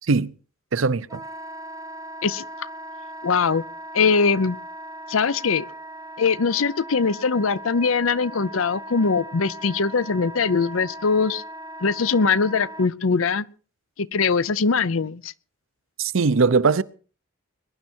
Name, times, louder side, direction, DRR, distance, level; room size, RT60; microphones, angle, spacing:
voice 1, 0.0-0.3 0.7-1.2 16.0-16.8, right 4 dB, 75° right, 0.7 m, -20 dB
Wind instrument woodwind instrument, 1.1-12.9, right 1 dB, 15° right, 0.7 m, -39 dB
voice 2, 3.2-3.6 3.9-4.6 5.1-5.7 6.2-11.4 11.8-13.5 14.0-15.3, left 5 dB, 85° left, 0.7 m, -21 dB
21.5 x 10.5 x 4.5 m
head